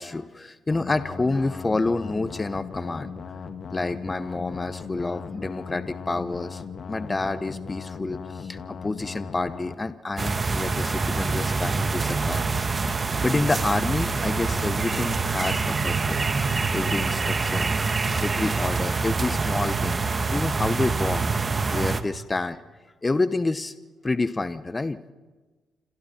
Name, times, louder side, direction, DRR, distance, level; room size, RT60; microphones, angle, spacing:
voice 1, 0.0-3.1 3.7-6.6 6.9-12.4 12.8-17.7 18.2-20.0 20.3-21.2 21.7-22.6 23.0-23.7 24.0-25.0, left 3 dB, 25° left, 12 dB, 0.9 m, -28 dB
sound 1, 0.7-9.7, left 5 dB, 55° left, 1.9 m, -38 dB
sound 2, 10.2-22.0, right 4 dB, 35° right, 1.3 m, -25 dB
28.0 x 27.0 x 4.4 m, 1.3 s
supercardioid pair, 70°, 0 cm